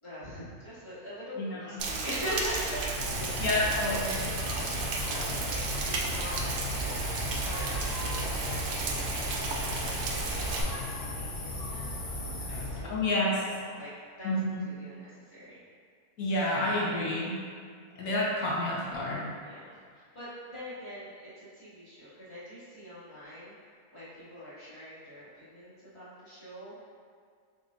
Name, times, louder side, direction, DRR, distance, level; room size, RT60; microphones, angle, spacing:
voice 1, 0.0-12.0 12.5-13.9 14.2-14.4 14.6-15.6 19.4-19.6 19.9-23.5 23.9-26.8, equal, 20° left, -12 dB, 1.3 m, -43 dB
Rain, 1.8-10.6, right 3 dB, 85° right, 1.1 m, -33 dB
sound 1, 2.9-12.8, left 2 dB, 55° left, 0.7 m, -36 dB
voice 2, 3.4-4.2 12.8-13.3 14.2-14.6 16.2-17.3 18.0-19.3, left 1 dB, 75° left, -5 dB, 1.5 m, -29 dB
4.9 x 3.9 x 2.5 m, 2.1 s
omnidirectional pair, 1.6 m